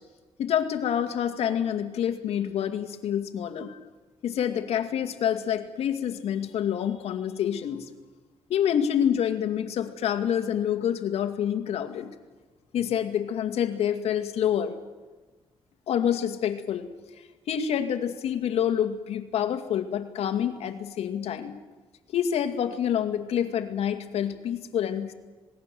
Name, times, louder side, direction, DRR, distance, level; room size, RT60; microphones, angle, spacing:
voice 1, 0.4-3.8 4.2-7.8 8.5-12.1 12.7-14.7 15.9-16.9 17.5-21.5 22.1-25.1, left 9 dB, 75° left, 7 dB, 2.2 m, -27 dB
26.5 x 20.0 x 7.7 m, 1.3 s
cardioid pair, 95°, 11 cm